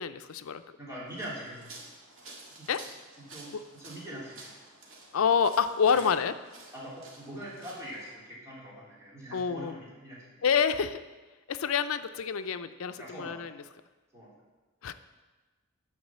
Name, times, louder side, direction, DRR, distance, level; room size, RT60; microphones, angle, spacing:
voice 1, 0.0-0.6 2.7-2.9 3.5-3.6 5.1-6.3 9.3-9.7 10.4-11.0 11.5-13.6 14.8-14.9, left 6 dB, 90° left, 12 dB, 0.5 m, -27 dB
voice 2, 0.8-1.9 2.6-2.7 3.2-4.5 6.7-10.5 13.0-13.5 14.1-14.3, right 1 dB, 15° right, -8 dB, 3.3 m, -43 dB
sound 1, 1.1-8.1, right 2 dB, 75° right, 1.9 m, -51 dB
9.5 x 5.0 x 7.3 m, 1.2 s
head